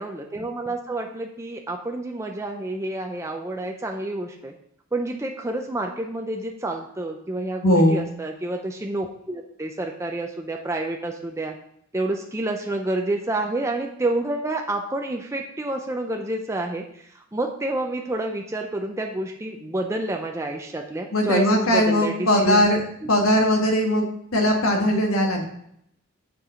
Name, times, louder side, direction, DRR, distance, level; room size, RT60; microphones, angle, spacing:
voice 1, 0.0-4.5 4.9-11.5 11.9-22.7, right 2 dB, 15° right, 2 dB, 0.5 m, -29 dB
voice 2, 7.6-8.0 21.1-22.8 23.1-24.0 24.3-25.4, equal, 85° left, 3 dB, 1.5 m, -19 dB
7.3 x 4.7 x 5.0 m, 0.72 s
head